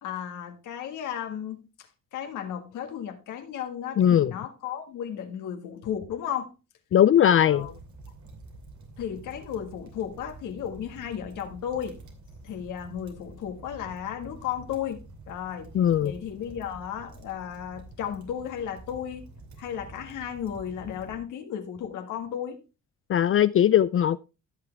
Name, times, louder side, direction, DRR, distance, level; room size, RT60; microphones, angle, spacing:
voice 1, 0.0-6.5 7.3-7.7 9.0-12.0 12.4-15.7 16.0-19.3 19.6-22.6, left 9 dB, 85° left, 1.8 m, -34 dB
voice 2, 4.0-4.3 6.9-7.7 15.7-16.1 23.1-24.2, left 10 dB, 45° left, 0.4 m, -19 dB
sound 1, 7.5-21.2, right 3 dB, 70° right, 2.8 m, -48 dB
15.5 x 5.9 x 3.3 m
cardioid pair, 90°, 30 cm